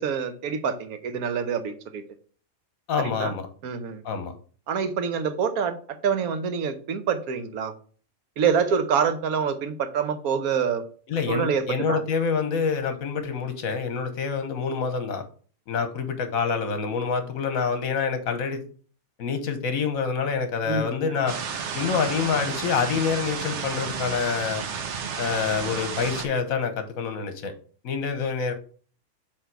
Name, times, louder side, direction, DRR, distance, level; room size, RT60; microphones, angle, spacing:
voice 1, 0.0-2.0 3.0-3.3 3.6-4.0 4.7-7.7 8.4-10.8 11.3-12.0 20.7-21.2, right 6 dB, 90° right, 9 dB, 1.3 m, -26 dB
voice 2, 2.9-3.5 4.0-4.3 11.1-15.2 15.7-18.6 19.2-21.3 21.7-24.6 25.2-27.5 27.8-28.5, left 6 dB, 75° left, 8 dB, 1.4 m, -27 dB
sound 1, 21.3-26.3, right 6 dB, 60° right, 1.0 m, -32 dB
7.4 x 3.3 x 4.6 m, 0.43 s
omnidirectional pair, 1.5 m